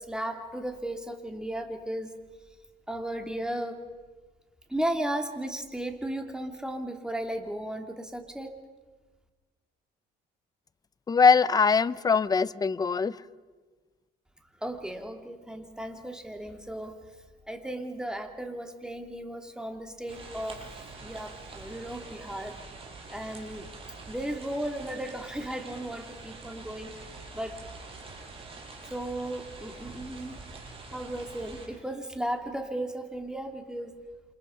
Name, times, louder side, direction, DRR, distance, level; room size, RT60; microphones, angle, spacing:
voice 1, 0.0-2.1 2.9-3.9 4.7-8.6 14.6-17.0 17.5-20.7 21.0-22.6 23.1-23.7 24.1-27.1 27.3-27.6 28.9-30.4 30.9-34.0, right 1 dB, 5° right, 4 dB, 2.8 m, -35 dB
voice 2, 11.1-13.2, left 5 dB, 25° left, 16 dB, 0.7 m, -22 dB
sound 1, 20.1-31.7, right 3 dB, 35° right, 6.5 m, -45 dB
28.0 x 27.5 x 5.8 m, 1.3 s
cardioid pair, 110°, 17 cm